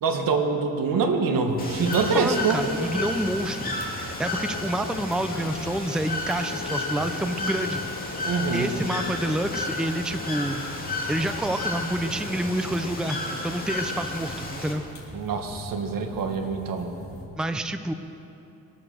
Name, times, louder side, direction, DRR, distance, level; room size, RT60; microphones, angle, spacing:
voice 1, 0.0-2.6 8.2-8.7 15.1-16.9, right 4 dB, 75° right, 5 dB, 1.7 m, -25 dB
sound 1, 0.9-12.0, left 7 dB, 60° left, 1.4 m, -42 dB
sound 2, 1.5-17.2, left 1 dB, 40° left, 3.1 m, -43 dB
Bird / Water, 1.6-14.7, left 2 dB, 25° left, 2.4 m, -32 dB
voice 2, 2.0-8.0 8.5-10.6 11.1-14.8 17.4-17.9, right 1 dB, ahead, 9 dB, 0.5 m, -28 dB
22.5 x 8.6 x 6.7 m, 2.9 s
cardioid pair, 115°, 34 cm